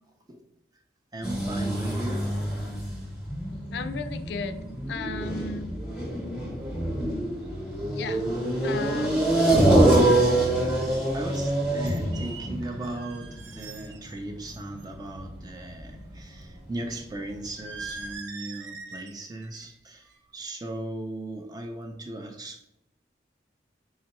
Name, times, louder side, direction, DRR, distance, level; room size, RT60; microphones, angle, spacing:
voice 1, 1.1-2.4 6.6-6.7 10.9-22.6, right 2 dB, 20° right, 4 dB, 0.4 m, -37 dB
sound 1, 1.2-16.8 17.1-17.2 17.8-17.9 18.1-18.2, right 1 dB, 5° right, 0.9 m, -26 dB
voice 2, 3.7-4.6 4.9-5.7 8.0-8.2 8.6-9.2, left 4 dB, 65° left, 10 dB, 0.3 m, -34 dB
sound 2, 11.4-11.5 11.9-14.2 14.5-14.9 17.6-19.2 19.4-19.8 20.1-20.4, right 4 dB, 85° right, 0.5 m, -42 dB
3.7 x 3.2 x 3.0 m, 0.79 s
head